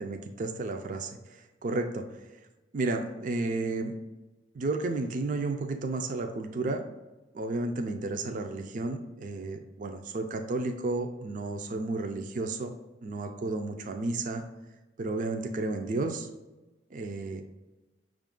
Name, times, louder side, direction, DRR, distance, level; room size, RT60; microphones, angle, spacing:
voice 1, 0.0-2.4 2.7-3.9 4.5-6.9 7.3-12.7 13.0-14.4 15.0-16.3 16.9-17.4, right 2 dB, 45° right, 6 dB, 0.3 m, -32 dB
5.9 x 2.4 x 3.6 m, 1.1 s
head